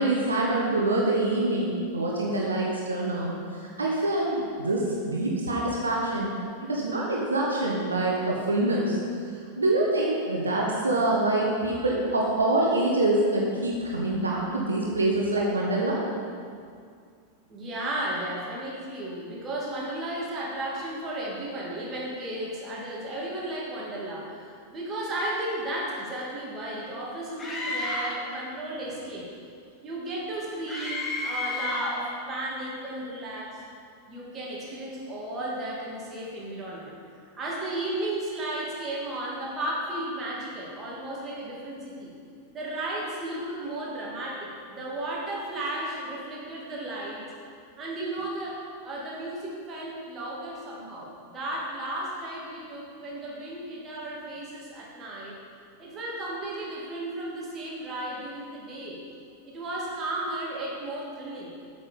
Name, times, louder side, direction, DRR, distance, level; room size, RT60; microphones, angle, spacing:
voice 1, 0.0-6.4 6.6-9.0 9.6-16.0, right 2 dB, 75° right, -3 dB, 1.2 m, -25 dB
voice 2, 17.5-29.3 29.8-33.6 34.1-37.0 37.3-42.1 42.5-47.2 47.8-55.3 55.8-59.0 59.4-61.5, right 1 dB, 25° right, -5 dB, 2.5 m, -34 dB
Screaming, 27.4-28.3 30.7-32.0, left 3 dB, 15° left, 1.6 m, -31 dB
8.5 x 6.9 x 5.3 m, 2.3 s
figure-of-eight pair, 90°, 0 cm